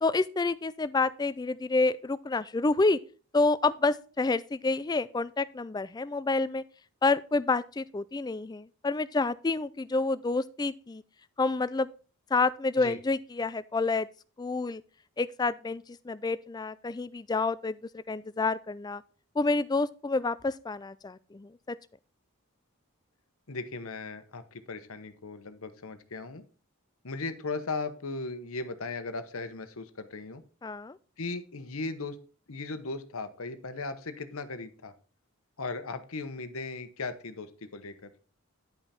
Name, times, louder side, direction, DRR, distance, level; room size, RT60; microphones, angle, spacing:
voice 1, 0.0-3.0 3.3-6.6 7.0-11.0 11.4-11.9 12.3-14.1 14.4-14.8 15.2-19.0 19.4-21.8 30.6-31.0, left 3 dB, 20° left, 0.3 m, -28 dB
voice 2, 23.5-26.4 27.0-30.4 31.2-32.2 32.5-34.9 35.6-38.1, left 3 dB, 70° left, 1.0 m, -37 dB
10.5 x 5.6 x 4.2 m
head